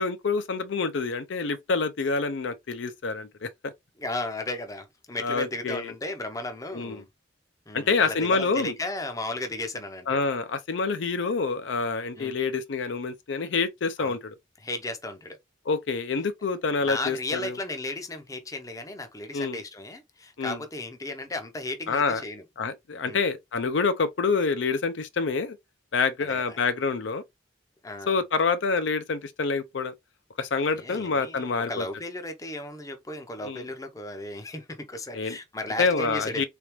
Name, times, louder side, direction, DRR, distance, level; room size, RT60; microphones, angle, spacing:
voice 1, 0.0-3.7 5.2-5.9 6.7-7.0 7.7-8.7 10.1-14.3 15.7-17.6 19.3-19.6 20.4-20.6 21.9-22.2 22.6-25.6 25.9-27.2 28.1-29.9 30.4-31.9 33.4-33.6 35.1-35.4 35.8-36.4, left 4 dB, 70° left, 0.5 m, -27 dB
voice 2, 4.0-7.0 7.7-10.2 12.2-12.3 14.0-14.2 14.6-15.4 16.8-22.4 23.1-23.2 26.2-26.6 27.8-28.2 30.8-36.4, left 2 dB, 15° left, 0.6 m, -35 dB
3.8 x 3.4 x 2.9 m
head